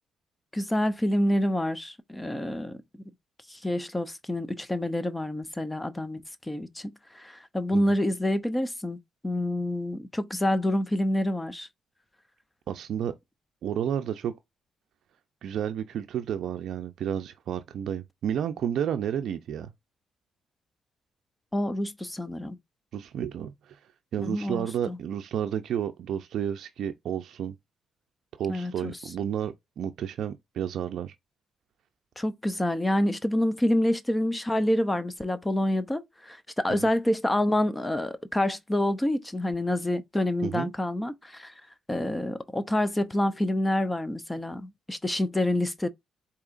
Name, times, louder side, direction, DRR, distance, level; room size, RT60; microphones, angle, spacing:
voice 1, 0.5-2.8 3.5-9.0 9.2-11.7 21.5-22.6 24.2-25.0 28.5-29.0 32.2-41.5 41.9-45.9, left 1 dB, 10° left, 0.5 m, -27 dB
voice 2, 12.7-13.1 13.6-14.3 15.4-19.7 22.9-23.8 24.1-27.5 28.4-31.1 36.8-36.9 40.4-40.7, right 9 dB, 70° right, 0.4 m, -31 dB
4.8 x 2.8 x 2.4 m
cardioid pair, 90°, 0 cm